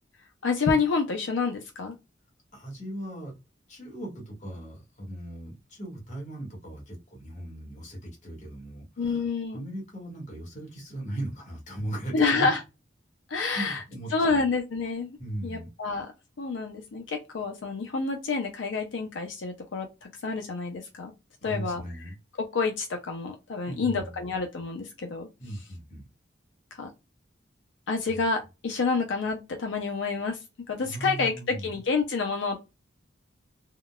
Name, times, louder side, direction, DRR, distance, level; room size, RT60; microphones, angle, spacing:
voice 1, 0.4-1.9 9.0-9.6 12.1-12.6 13.3-13.8 14.1-15.2 15.4-16.1 16.4-21.1 21.4-21.8 22.5-25.3 26.7-26.9 27.9-30.4 30.7-32.6, left 4 dB, 85° left, 0.5 m, -28 dB
voice 2, 2.5-3.3 3.7-12.5 13.5-14.4 15.2-15.7 21.4-22.1 23.7-24.3 25.4-26.1 28.1-28.2 30.8-31.7, right 1 dB, 40° left, 1.4 m, -38 dB
3.6 x 2.2 x 2.3 m
head